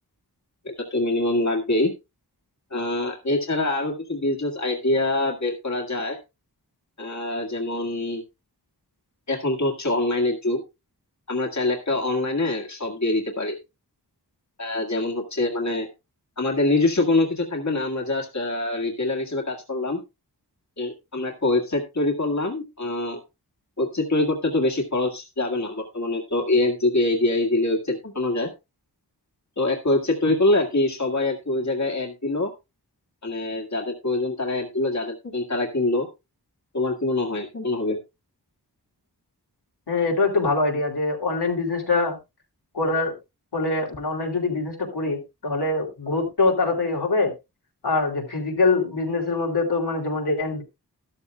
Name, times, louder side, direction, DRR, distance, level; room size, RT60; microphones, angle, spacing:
voice 1, 0.7-1.9 2.7-6.2 7.0-8.2 9.3-10.6 11.3-13.6 14.6-15.9 16.4-20.0 20.8-23.2 23.8-28.5 29.6-32.5 33.2-36.1 36.7-38.0, left 2 dB, 45° left, 1 dB, 1.8 m, -24 dB
voice 2, 39.9-42.2 42.7-43.1 43.5-47.3 47.8-50.6, left 3 dB, 80° left, 0 dB, 2.9 m, -24 dB
12.5 x 12.5 x 2.2 m, 0.24 s
wide cardioid pair, 50°, 39 cm